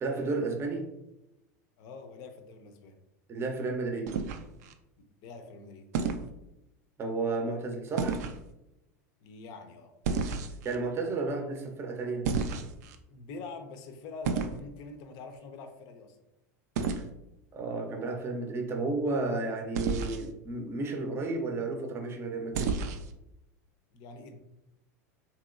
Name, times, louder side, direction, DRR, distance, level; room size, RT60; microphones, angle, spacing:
voice 1, 0.0-0.9 3.3-4.1 7.0-8.2 10.6-12.3 17.5-22.8, right 3 dB, 30° right, 4 dB, 0.6 m, -32 dB
voice 2, 1.8-3.0 5.2-5.9 9.2-9.9 13.1-16.2 23.9-24.4, left 3 dB, 55° left, 7 dB, 0.5 m, -45 dB
sound 1, 4.1-4.7 5.9-6.3 8.0-8.4 10.0-10.8 12.2-13.0 14.2-14.6 16.8-17.0 19.7-20.3 22.5-23.1, right 5 dB, 75° right, 0.3 m, -31 dB
2.9 x 2.9 x 2.4 m, 0.88 s
hypercardioid pair, 105°, 9 cm